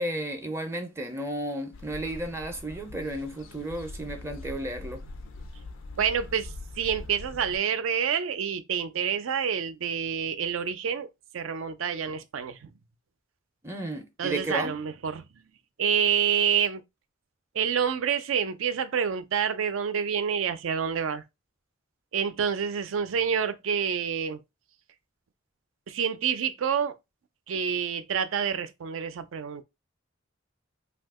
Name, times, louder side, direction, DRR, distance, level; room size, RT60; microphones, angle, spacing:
voice 1, 0.0-5.0 13.6-14.7, right 1 dB, 15° right, 0.4 m, -33 dB
sound 1, 1.7-7.6, left 2 dB, 80° left, 0.5 m, -42 dB
voice 2, 6.0-12.7 14.2-15.5 15.8-16.8 17.5-21.2 22.1-24.4 25.9-26.9 27.5-29.6, right 7 dB, 80° right, 0.4 m, -28 dB
2.7 x 2.4 x 3.5 m
head